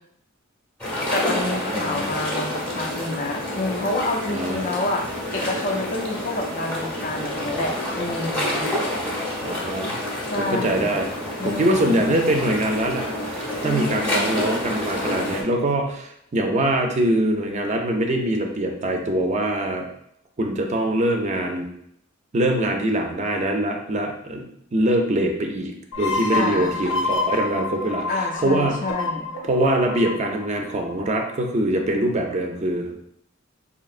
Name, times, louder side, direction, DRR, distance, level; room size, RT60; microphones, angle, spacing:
sound 1, 0.8-15.4, left 1 dB, 5° left, 0.8 m, -28 dB
voice 1, 1.1-5.1 5.3-8.7 10.2-11.0 11.4-12.1 13.6-14.4 26.3-26.7 28.1-29.3, left 2 dB, 40° left, 2 dB, 0.5 m, -28 dB
voice 2, 1.7-2.2 4.3-4.7 9.4-10.0 10.4-11.1 11.4-19.9 20.4-21.7 22.3-24.4 24.7-28.8 29.4-33.0, right 1 dB, 35° right, 3 dB, 0.5 m, -23 dB
sound 2, 25.9-31.4, left 3 dB, 75° left, 0.8 m, -28 dB
4.1 x 2.8 x 2.4 m, 0.73 s
head